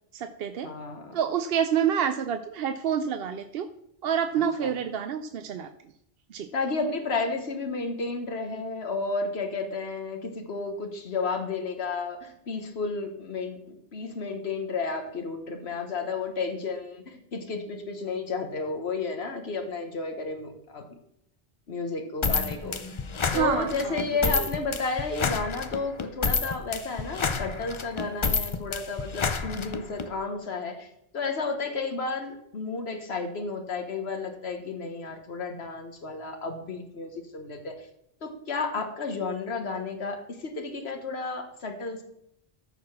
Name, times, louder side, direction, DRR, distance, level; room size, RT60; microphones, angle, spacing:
voice 1, 0.1-0.7 1.1-3.7 4.0-5.7 6.3-6.5 23.2-24.5, right 8 dB, 70° right, 8 dB, 0.8 m, -28 dB
voice 2, 0.6-1.2 4.6-4.7 6.5-21.0 21.7-22.8 23.3-30.9 31.1-37.7 38.2-42.0, left 4 dB, 85° left, 4 dB, 1.5 m, -32 dB
sound 1, 22.2-30.1, left 5 dB, 35° left, 0.5 m, -29 dB
14.0 x 4.8 x 5.9 m, 0.76 s
omnidirectional pair, 1.0 m